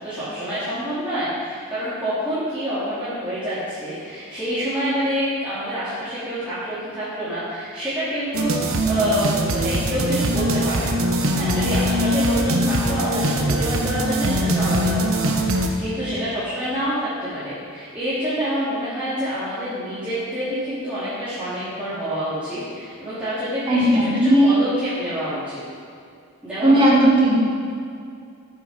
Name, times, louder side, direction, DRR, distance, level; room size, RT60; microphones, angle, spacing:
voice 1, 0.0-11.1 11.3-25.6 26.4-27.0, equal, 5° right, -15 dB, 2.9 m, -27 dB
sound 1, 8.3-15.7, right 1 dB, 75° right, 1.1 m, -22 dB
voice 2, 23.7-24.5 26.6-27.4, right 1 dB, 25° right, -6 dB, 2.7 m, -16 dB
13.5 x 7.0 x 5.1 m, 2.4 s
head